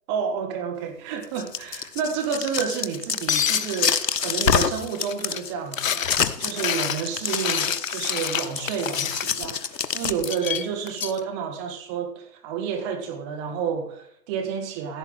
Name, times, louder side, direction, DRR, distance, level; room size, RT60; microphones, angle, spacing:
voice 1, 0.1-6.1 6.4-15.0, right 7 dB, 20° right, 1.7 m, -30 dB
sound 1, 1.2-10.6, left 6 dB, 90° left, 1.3 m, -27 dB
sound 2, 1.6-1.9 2.3-2.6 3.1-4.0 4.5-4.6 4.8-5.4 5.7-9.3 10.3-11.2, left 8 dB, 55° left, 1.0 m, -28 dB
16.0 x 5.7 x 8.8 m
hypercardioid pair, 155°, 48 cm